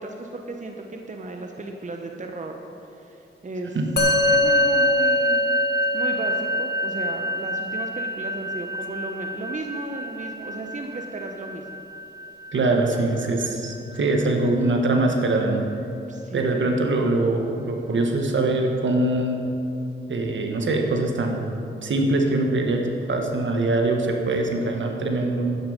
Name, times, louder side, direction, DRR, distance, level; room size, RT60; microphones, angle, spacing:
voice 1, 0.0-3.8 4.3-5.4 5.9-11.8 16.1-16.6, right 2 dB, 35° right, 3 dB, 1.0 m, -35 dB
Musical instrument, 4.0-13.5, left 1 dB, 50° left, 1.8 m, -25 dB
voice 2, 12.5-15.7 16.3-19.4 20.1-21.5 21.8-25.5, right 2 dB, 65° right, 3 dB, 1.6 m, -23 dB
11.5 x 9.7 x 5.2 m, 2.8 s
cardioid pair, 60°, 21 cm